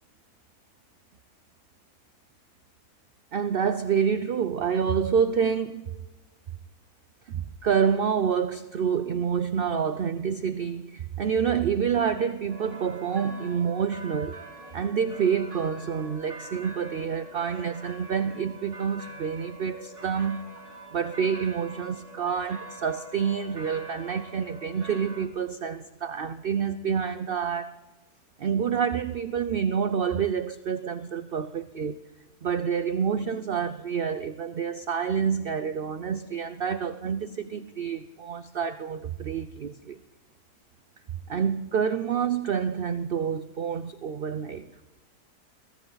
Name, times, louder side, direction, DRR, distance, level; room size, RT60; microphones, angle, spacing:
voice 1, 3.3-5.9 7.3-14.4 14.7-20.5 20.9-27.8 28.4-32.0 32.4-40.0 41.3-44.7, right 7 dB, 65° right, 0.5 m, -28 dB
sound 1, 12.5-25.3, right 1 dB, 50° right, 2.6 m, -45 dB
22.0 x 16.0 x 4.0 m
omnidirectional pair, 1.7 m